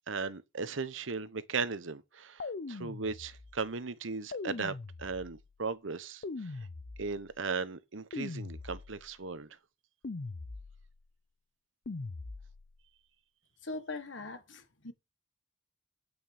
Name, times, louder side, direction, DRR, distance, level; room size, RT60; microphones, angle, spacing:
voice 1, 0.1-4.7 5.0-6.5 7.0-9.6, right 4 dB, 75° right, 1.0 m, -37 dB
sound 1, 2.4-3.6 4.3-5.5 6.2-7.4 8.1-9.2 10.0-11.0 11.9-12.8, left 3 dB, 50° left, 0.6 m, -41 dB
voice 2, 13.6-14.9, left 2 dB, 65° left, 1.7 m, -41 dB
9.0 x 6.2 x 6.6 m
head